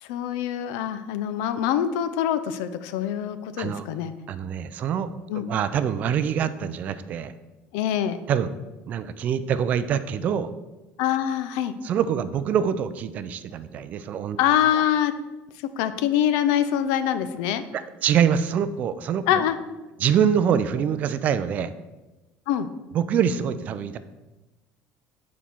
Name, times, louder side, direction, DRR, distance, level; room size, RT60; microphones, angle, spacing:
voice 1, 0.0-4.1 5.3-5.4 7.7-8.2 11.0-11.7 14.4-15.1 15.8-17.6 19.3-19.6 22.5-22.7, left 10 dB, 85° left, 12 dB, 0.5 m, -24 dB
voice 2, 4.3-5.1 5.3-7.3 8.3-8.5 8.9-10.5 11.8-14.4 17.7-19.4 20.0-21.7 22.9-24.0, right 8 dB, 35° right, 13 dB, 0.3 m, -25 dB
7.2 x 4.2 x 4.4 m, 1.1 s
cardioid pair, 170°, 5 cm